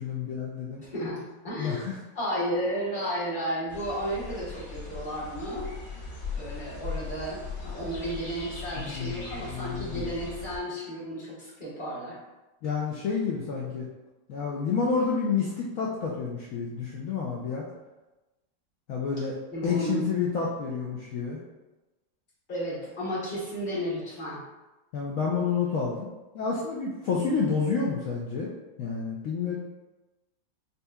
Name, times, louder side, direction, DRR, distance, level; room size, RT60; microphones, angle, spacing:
voice 1, 0.0-0.8 1.6-2.0 8.7-10.1 12.6-13.9 14.3-17.6 18.9-19.4 19.6-21.4 24.9-26.1 26.3-28.5 28.8-29.6, left 5 dB, 80° left, -4 dB, 0.7 m, -29 dB
voice 2, 0.9-1.8 2.1-5.7 6.3-12.2 19.5-20.0 22.5-24.4, equal, 30° left, -8 dB, 1.2 m, -33 dB
sound 1, 3.7-10.6, left 4 dB, 60° left, 2.0 m, -39 dB
5.5 x 2.7 x 2.3 m, 1.1 s
omnidirectional pair, 2.0 m